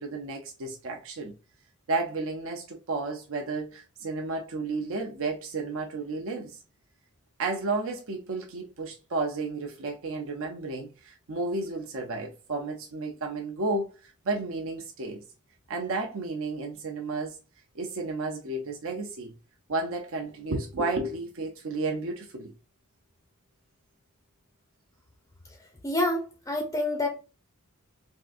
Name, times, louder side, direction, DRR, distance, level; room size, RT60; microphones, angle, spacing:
voice 1, 0.0-1.3 1.9-6.6 7.4-15.2 15.7-17.4 17.7-19.3 19.7-22.5, right 3 dB, 65° right, 0.6 m, -32 dB
voice 2, 25.8-27.1, left 1 dB, 15° left, 0.5 m, -27 dB
3.5 x 2.5 x 2.5 m
head